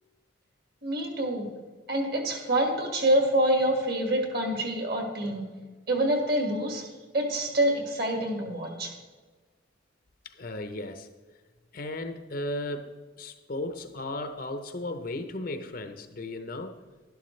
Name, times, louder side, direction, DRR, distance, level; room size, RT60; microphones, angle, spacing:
voice 1, 0.8-1.5 1.9-5.4 5.9-6.9 7.1-8.9, right 1 dB, 50° right, 2 dB, 1.9 m, -26 dB
voice 2, 10.2-11.1 11.7-16.8, left 1 dB, 45° left, 8 dB, 0.7 m, -35 dB
12.0 x 11.5 x 3.2 m, 1.3 s
head